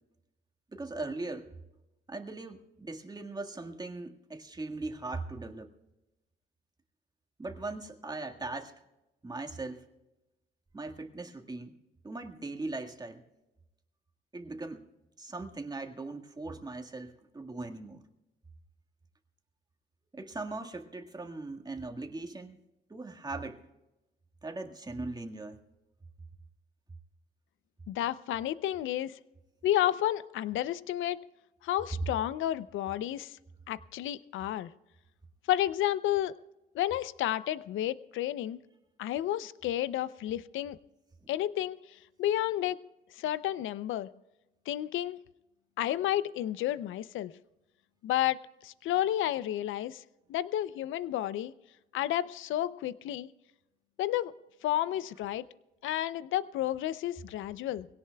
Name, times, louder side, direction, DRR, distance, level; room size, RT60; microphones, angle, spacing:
voice 1, 0.7-1.6 2.1-5.7 7.4-8.7 9.2-9.8 10.7-11.8 12.0-13.2 14.3-14.9 15.2-18.0 20.1-22.6 22.9-23.6 24.4-25.6 41.2-41.3, right 3 dB, 20° right, 4 dB, 1.7 m, -39 dB
voice 2, 27.9-29.2 29.6-31.3 31.6-33.3 33.7-34.7 35.5-36.4 36.7-38.6 39.0-40.8 41.3-41.8 42.2-42.8 43.2-44.1 44.7-45.2 45.8-47.3 48.0-50.0 50.3-51.5 51.9-53.3 54.0-54.3 54.6-55.4 55.8-57.9, left 13 dB, 80° left, 16 dB, 0.6 m, -31 dB
22.5 x 17.0 x 2.3 m, 0.98 s
cardioid pair, 90°, 20 cm